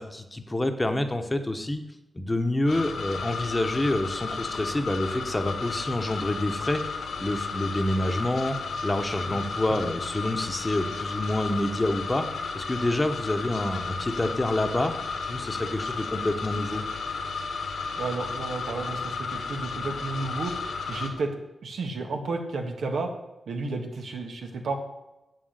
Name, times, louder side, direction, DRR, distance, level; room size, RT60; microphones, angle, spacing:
voice 1, 0.0-1.8 2.1-6.8 7.2-8.6 8.8-12.2 12.5-14.9 15.3-16.8, left 1 dB, 20° left, 7 dB, 1.1 m, -27 dB
sound 1, 2.7-21.1, left 4 dB, 85° left, 2.0 m, -33 dB
voice 2, 18.0-20.5 20.9-21.3 21.6-23.1 23.5-24.8, right 3 dB, 85° right, 3 dB, 1.7 m, -32 dB
8.1 x 7.6 x 8.1 m, 0.95 s
wide cardioid pair, 95°, 0 cm